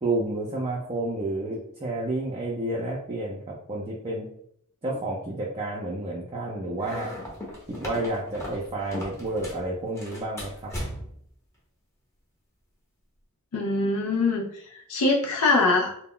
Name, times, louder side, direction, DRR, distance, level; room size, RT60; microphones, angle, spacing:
voice 1, 0.0-4.3 4.8-7.1 7.7-10.7, right 2 dB, 25° right, -4 dB, 0.4 m, -30 dB
sound 1, 6.8-9.7 10.0-11.3, equal, 10° left, 0.7 m, -37 dB
voice 2, 13.5-15.9, left 3 dB, 85° left, 1 dB, 0.4 m, -23 dB
2.2 x 2.0 x 3.6 m, 0.69 s
head